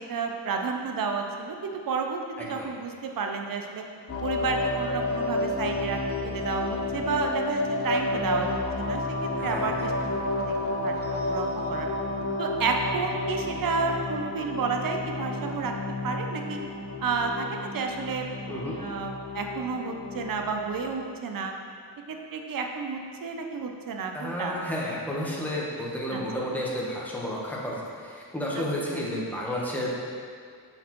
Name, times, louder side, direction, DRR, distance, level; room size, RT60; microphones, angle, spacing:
voice 1, 0.0-3.8 4.2-11.9 12.4-15.7 16.0-16.6 17.0-21.5 22.1-24.6 26.1-26.2, right 4 dB, 55° right, 3 dB, 0.6 m, -31 dB
voice 2, 2.4-2.7 9.4-9.9 18.5-18.7 24.1-29.9, left 1 dB, 5° left, -5 dB, 1.0 m, -32 dB
sound 1, 4.1-20.9, left 2 dB, 35° left, 0.6 m, -31 dB
6.5 x 5.9 x 3.0 m, 2.3 s
wide cardioid pair, 135°, 41 cm